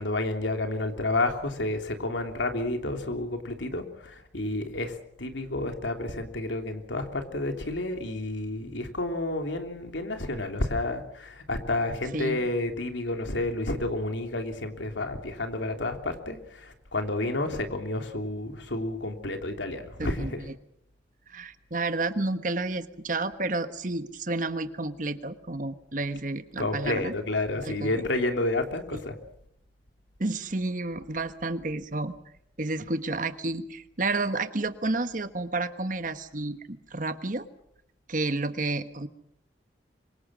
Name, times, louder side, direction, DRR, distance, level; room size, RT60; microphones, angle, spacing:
voice 1, 0.0-20.4 26.6-29.2, left 2 dB, 85° left, 5 dB, 3.2 m, -30 dB
voice 2, 12.1-12.4 20.0-20.5 21.3-27.1 27.6-28.0 28.9-29.0 30.2-32.1 32.6-37.5 38.1-39.1, right 2 dB, 45° right, 10 dB, 1.4 m, -31 dB
26.0 x 23.5 x 6.3 m, 0.73 s
head